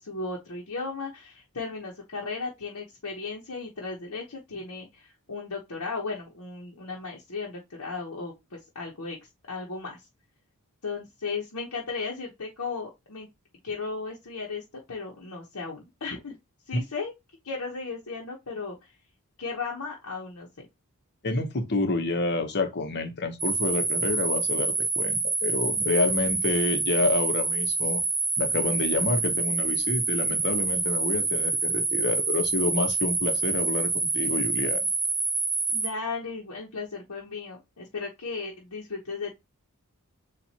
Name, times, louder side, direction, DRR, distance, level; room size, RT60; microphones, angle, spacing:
voice 1, 0.0-9.2 9.5-10.0 10.8-13.3 13.6-16.4 16.7-17.1 17.4-18.9 19.4-20.7 35.7-39.3, left 4 dB, 75° left, 1.0 m, -35 dB
voice 2, 21.2-28.0 28.4-34.8, left 3 dB, 50° left, 0.9 m, -28 dB
sound 1, 23.4-35.9, right 3 dB, 20° right, 1.3 m, -27 dB
7.2 x 2.5 x 2.8 m
head